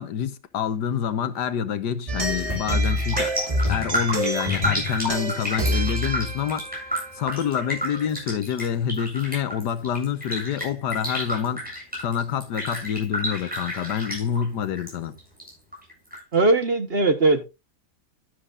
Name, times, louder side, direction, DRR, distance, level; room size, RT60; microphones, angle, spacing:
voice 1, 0.0-3.3 3.7-6.6 7.1-11.7 12.0-15.1, left 8 dB, 80° left, 1.5 m, -27 dB
sound 1, 2.1-7.9, equal, 20° right, 1.3 m, -27 dB
Raindrop, 2.3-2.6 2.8-14.9 15.2-16.2 16.6-16.7, equal, 5° right, 7.9 m, -31 dB
voice 2, 16.3-17.4, right 2 dB, 40° right, 1.2 m, -19 dB
11.5 x 11.0 x 2.5 m
omnidirectional pair, 1.8 m